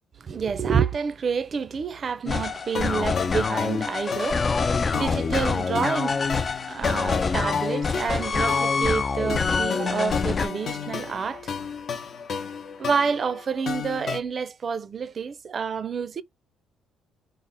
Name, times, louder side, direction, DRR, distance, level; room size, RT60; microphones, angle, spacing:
voice 1, 0.2-11.5 12.8-16.2, right 6 dB, 45° right, 0.5 m, -28 dB
sound 1, 2.3-10.5, left 4 dB, 35° left, 0.3 m, -26 dB
sound 2, 2.8-14.2, left 6 dB, 55° left, 0.7 m, -34 dB
3.4 x 2.1 x 4.0 m
supercardioid pair, 80°, 0 cm